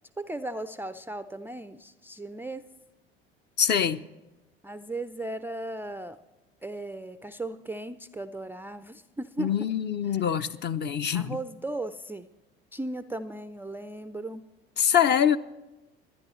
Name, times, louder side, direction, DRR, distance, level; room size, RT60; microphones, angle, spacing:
voice 1, 0.2-2.6 4.6-6.2 6.6-9.5 11.1-12.3 12.7-14.5, right 2 dB, 5° right, 0.4 m, -36 dB
voice 2, 3.6-4.0 9.4-11.4 14.8-15.4, left 8 dB, 35° left, 0.7 m, -24 dB
24.5 x 10.0 x 3.1 m
hypercardioid pair, 70°, 30 cm